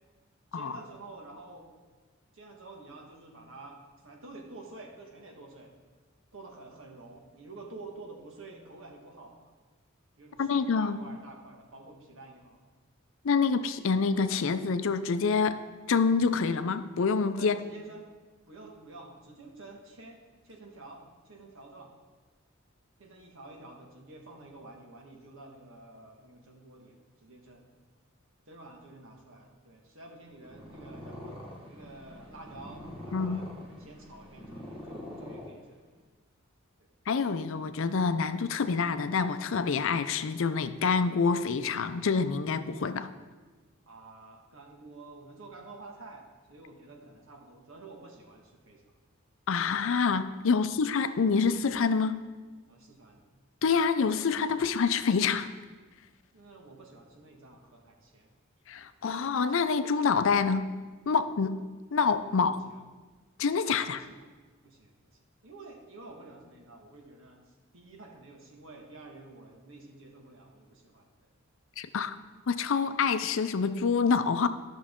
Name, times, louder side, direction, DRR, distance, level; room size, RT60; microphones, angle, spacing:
voice 1, 0.5-1.7 2.3-5.7 6.3-9.5 10.2-12.6 17.4-18.1 18.5-21.9 23.0-27.7 28.5-33.5 33.8-35.8 36.8-36.9 43.9-46.2 46.5-48.8 50.5-50.7 52.7-53.2 56.3-58.3 62.3-62.8 63.9-64.3 64.6-64.9 65.4-71.3, right 2 dB, 70° right, 1 dB, 1.5 m, -49 dB
voice 2, 10.4-11.0 13.2-15.6 15.9-17.6 33.1-33.5 37.1-43.1 49.5-52.2 53.6-55.5 58.7-60.7 61.1-61.6 61.9-62.6 63.4-64.0 71.8-72.2 72.5-74.5, left 5 dB, 65° left, 11 dB, 0.5 m, -27 dB
Purr, 30.3-36.0, left 1 dB, 25° right, 1.5 m, -44 dB
14.0 x 6.2 x 3.7 m, 1.4 s
head